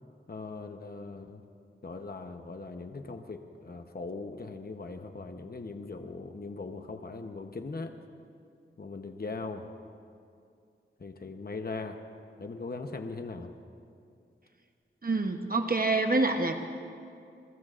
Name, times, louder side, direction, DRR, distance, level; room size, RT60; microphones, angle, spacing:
voice 1, 0.3-1.4 1.8-7.9 8.8-9.7 11.0-12.0 12.4-13.5, left 3 dB, 50° left, 6 dB, 0.9 m, -40 dB
voice 2, 15.0-16.7, right 2 dB, 45° right, 5 dB, 0.9 m, -27 dB
26.5 x 22.0 x 2.5 m, 2.5 s
wide cardioid pair, 65°, 20 cm